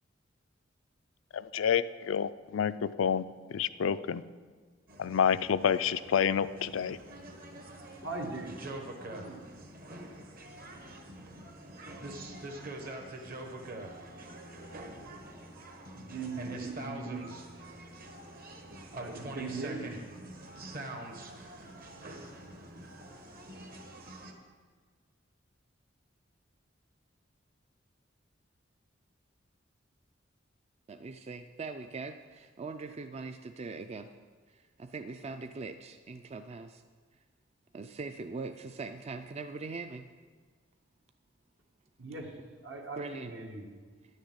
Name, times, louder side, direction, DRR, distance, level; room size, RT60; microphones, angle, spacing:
voice 1, 1.3-3.2 3.5-4.2 5.0-7.0, left 7 dB, 90° left, 14 dB, 0.4 m, -28 dB
sound 1, 4.9-24.3, right 1 dB, 50° right, 1.3 m, -45 dB
voice 2, 8.0-8.6 9.0-9.5 15.9-17.5 18.9-20.0 42.0-43.7, right 3 dB, 75° right, 1 dB, 1.8 m, -40 dB
voice 3, 30.9-34.1 34.5-36.8 37.7-40.1 43.0-43.3, right 3 dB, 35° right, 8 dB, 0.4 m, -41 dB
10.0 x 6.6 x 7.9 m, 1.5 s
head